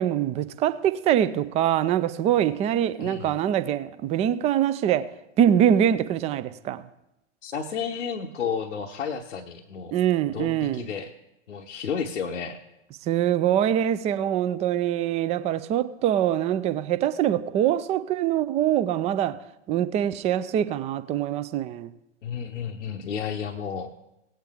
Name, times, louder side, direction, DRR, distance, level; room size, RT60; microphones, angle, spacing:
voice 1, 0.0-5.1 5.4-6.9 9.9-10.9 13.0-19.4 19.7-21.9, right 10 dB, 20° right, 0.4 m, -24 dB
voice 2, 3.0-3.4 7.4-10.0 10.3-11.1 11.5-12.6 22.2-23.9, left 6 dB, 75° left, 0.9 m, -32 dB
17.5 x 8.8 x 3.5 m
figure-of-eight pair, 95°, 36 cm